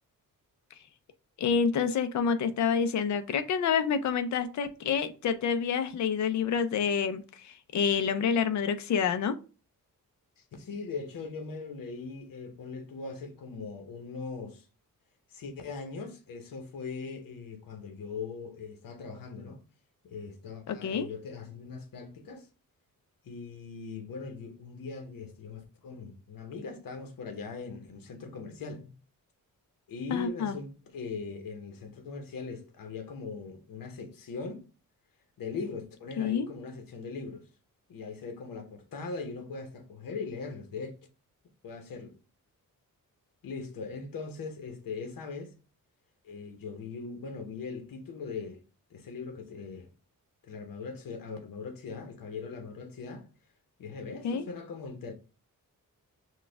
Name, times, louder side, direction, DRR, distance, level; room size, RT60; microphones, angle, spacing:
voice 1, 1.4-9.4 20.7-21.1 30.1-30.5 36.2-36.5 54.2-54.5, left 6 dB, 55° left, 0.5 m, -28 dB
voice 2, 10.4-14.7 15.3-19.6 20.0-22.5 23.2-29.0 29.9-34.7 35.4-37.5 37.9-40.9 41.6-42.2 43.4-45.5 46.2-48.6 48.9-49.9 50.4-53.3 53.8-55.1, left 4 dB, 75° left, 0.9 m, -40 dB
6.2 x 2.3 x 3.3 m
wide cardioid pair, 180°, 34 cm